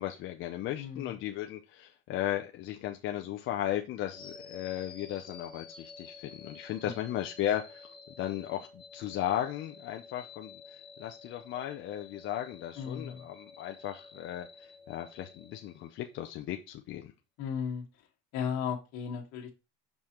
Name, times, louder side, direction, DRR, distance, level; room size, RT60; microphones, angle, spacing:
voice 1, 0.0-7.9 8.2-10.6 11.0-17.1, left 12 dB, 40° left, 0.5 m, -36 dB
voice 2, 0.7-1.1 6.8-6.9 12.8-13.3 17.4-17.9 18.3-19.5, left 7 dB, 60° left, 1.8 m, -35 dB
sound 1, 4.1-16.3, left 4 dB, 15° left, 0.9 m, -51 dB
6.4 x 5.4 x 2.9 m
cardioid pair, 170°, 31 cm